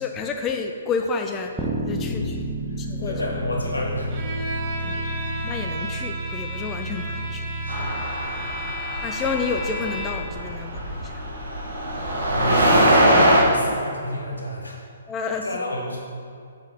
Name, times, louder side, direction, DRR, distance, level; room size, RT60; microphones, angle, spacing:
voice 1, 0.0-3.2 4.8-5.0 5.4-7.5 9.0-11.2 15.1-15.6, left 5 dB, 20° left, 4 dB, 0.4 m, -30 dB
sound 1, 1.6-7.8, right 1 dB, 5° right, 0.8 m, -30 dB
voice 2, 1.9-2.4 2.7-5.4 6.8-7.2 7.6-8.3 8.6-8.8 12.3-14.8 15.4-16.0, left 1 dB, 90° left, -2 dB, 1.7 m, -32 dB
Bowed string instrument, 4.1-10.4, equal, 35° right, 1.1 m, -33 dB
sound 2, 7.7-13.4, right 1 dB, 70° right, 1.4 m, -22 dB
7.2 x 5.2 x 4.0 m, 2.4 s
figure-of-eight pair, 130°, 0 cm